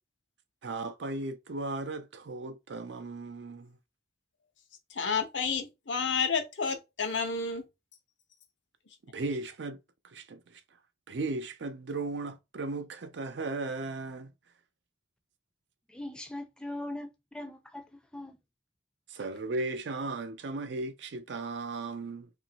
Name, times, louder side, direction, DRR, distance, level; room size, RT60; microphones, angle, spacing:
voice 1, 0.6-3.8 9.1-9.8 10.0-10.6 11.1-14.3 19.1-22.3, right 3 dB, 75° right, 0.5 m, -36 dB
voice 2, 4.9-7.6, left 5 dB, 85° left, 0.8 m, -30 dB
voice 3, 15.9-18.4, left 1 dB, 5° left, 0.4 m, -41 dB
2.8 x 2.5 x 2.7 m
head